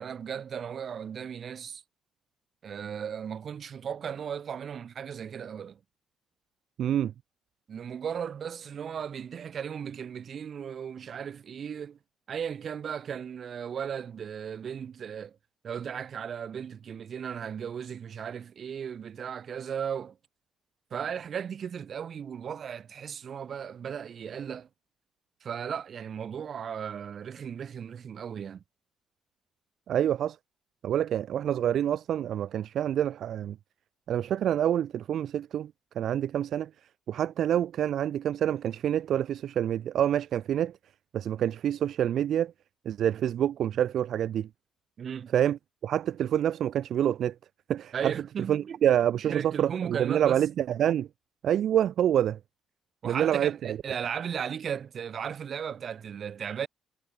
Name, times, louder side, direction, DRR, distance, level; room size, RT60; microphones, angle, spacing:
voice 1, 0.0-1.8 2.6-5.8 7.7-12.0 12.3-15.4 15.6-20.2 20.9-24.7 25.4-28.6 45.0-45.3 47.9-48.8 49.3-50.5 53.0-56.7, right 7 dB, 55° right, 7.8 m, -36 dB
voice 2, 6.8-7.1 29.9-30.4 30.8-33.6 34.1-36.7 37.1-40.8 41.1-42.5 42.9-44.5 45.3-47.4 47.7-48.1 48.5-51.1 51.4-52.4 53.0-53.8, right 10 dB, 70° right, 1.7 m, -27 dB
cardioid pair, 90°, 0 cm